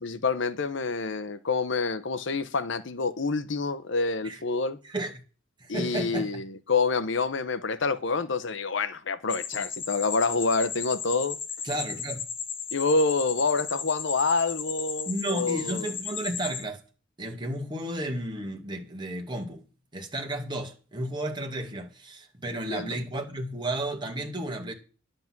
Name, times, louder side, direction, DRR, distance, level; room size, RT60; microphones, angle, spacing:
voice 1, 0.0-4.8 5.7-11.4 12.7-15.9 22.7-23.0, left 4 dB, 65° left, 0.8 m, -27 dB
voice 2, 5.6-6.4 11.6-12.2 15.1-16.8 17.2-19.6 19.9-24.7, right 1 dB, 25° right, 2.1 m, -33 dB
Cricket Buzzing At Night, 9.3-16.6, left 6 dB, 30° left, 0.9 m, -35 dB
11.0 x 7.9 x 6.0 m
head